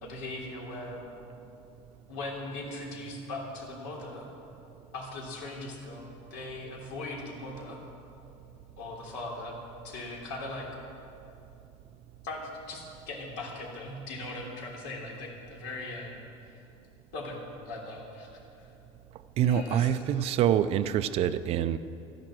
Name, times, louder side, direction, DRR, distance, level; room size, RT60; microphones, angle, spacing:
voice 1, 0.0-1.0 2.1-4.3 4.9-7.8 8.8-9.6 9.8-10.7 12.2-16.3 17.1-18.7 19.4-20.0, left 2 dB, 80° left, -1 dB, 3.2 m, -39 dB
voice 2, 19.4-21.8, right 10 dB, 45° right, 13 dB, 0.4 m, -26 dB
13.0 x 11.0 x 7.5 m, 2.7 s
cardioid pair, 145°, 15 cm